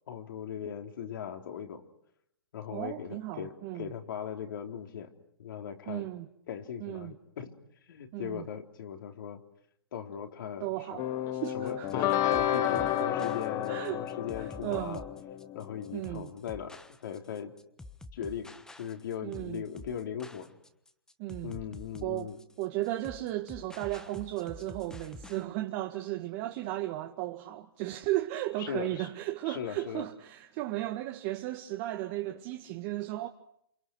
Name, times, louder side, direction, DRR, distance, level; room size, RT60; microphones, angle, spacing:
voice 1, 0.1-1.8 2.5-5.1 5.4-6.1 6.5-7.6 7.9-9.4 9.9-11.0 11.5-15.0 15.5-17.5 18.1-20.5 21.4-22.4 28.6-29.1 29.5-30.1 32.2-32.4, left 8 dB, 60° left, 3.9 m, -39 dB
voice 2, 2.7-3.9 5.9-6.3 6.8-7.2 8.1-8.4 10.6-11.1 11.3-12.1 12.6-13.3 13.7-14.0 14.4-15.0 15.9-16.3 19.2-19.6 21.2-21.6 22.0-22.3 22.6-33.3, right 16 dB, 35° right, 1.7 m, -35 dB
sound 1, 11.0-16.0, left 11 dB, 30° left, 1.4 m, -31 dB
sound 2, 11.4-25.5, left 2 dB, 5° left, 1.3 m, -49 dB
28.5 x 26.5 x 6.3 m
hypercardioid pair, 135°, 12 cm